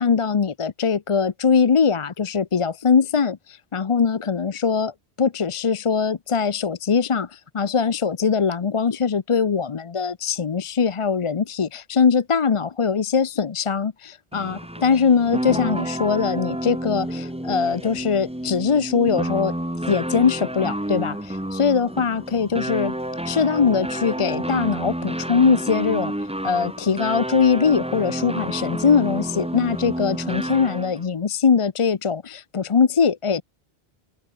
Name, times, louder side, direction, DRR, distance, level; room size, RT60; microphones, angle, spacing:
voice 1, 0.0-4.9 5.2-19.5 19.9-22.9 23.2-26.1 26.4-33.4, left 6 dB, 35° left, 0.6 m, -21 dB
sound 1, 14.3-31.1, right 1 dB, 5° right, 1.4 m, -29 dB
open air
omnidirectional pair, 1.0 m